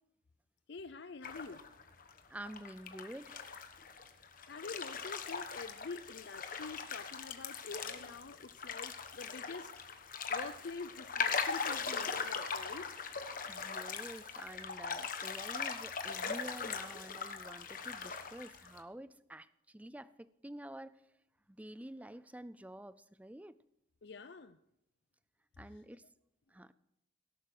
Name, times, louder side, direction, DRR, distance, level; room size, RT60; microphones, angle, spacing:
voice 1, 0.7-1.6 4.5-9.7 10.3-12.9 24.0-24.6 25.7-25.8, left 4 dB, 60° left, 11 dB, 0.5 m, -47 dB
sound 1, 1.2-2.2 2.5-18.8, left 5 dB, 45° left, 1.3 m, -40 dB
voice 2, 2.3-3.4 13.5-21.0 21.5-23.5 25.6-26.0 26.5-26.7, right 1 dB, 10° right, 16 dB, 0.5 m, -49 dB
17.5 x 11.5 x 6.0 m, 0.82 s
head